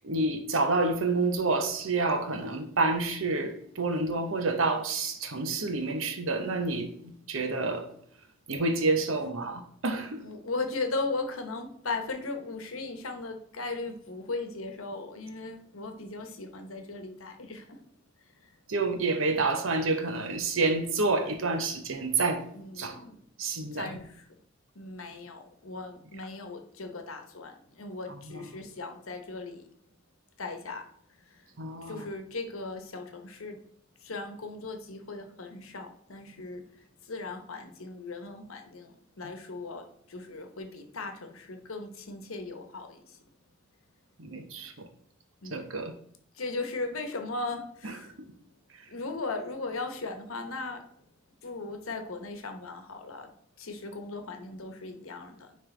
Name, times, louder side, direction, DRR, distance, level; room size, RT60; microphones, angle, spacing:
voice 1, 0.0-7.9 8.5-10.2 18.7-22.5 22.8-23.0 23.4-24.0 28.3-28.5 31.6-32.0 44.2-44.7 45.4-45.9 47.8-48.1 48.7-48.8, right 3 dB, 75° right, 0.9 m, -29 dB
voice 2, 10.2-17.8 18.4-18.5 22.5-23.2 23.7-24.3 24.7-29.6 30.4-30.8 31.3-31.4 31.8-33.6 34.0-36.6 37.0-43.2 45.4-45.7 46.3-48.1 48.9-50.8 51.4-53.3 53.6-55.6, left 3 dB, 85° left, 1.0 m, -37 dB
9.8 x 3.3 x 3.3 m
head